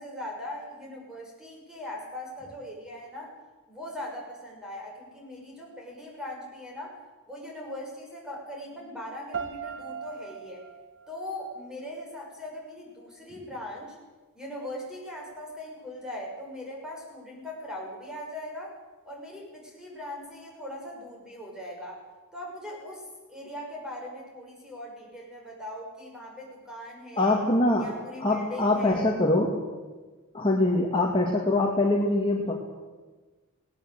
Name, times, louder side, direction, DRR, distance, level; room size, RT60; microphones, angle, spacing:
voice 1, 0.0-3.3 3.7-7.0 7.3-10.6 11.1-13.9 14.3-18.8 19.0-22.0 22.3-27.4 27.8-29.1, left 1 dB, 5° right, -2 dB, 6.7 m, -40 dB
sound 1, 9.3-12.3, right 7 dB, 60° right, 1.3 m, -40 dB
voice 2, 27.2-27.9 28.2-29.5 30.3-32.5, left 2 dB, 25° left, -1 dB, 2.3 m, -23 dB
19.5 x 18.0 x 8.2 m, 1.3 s
head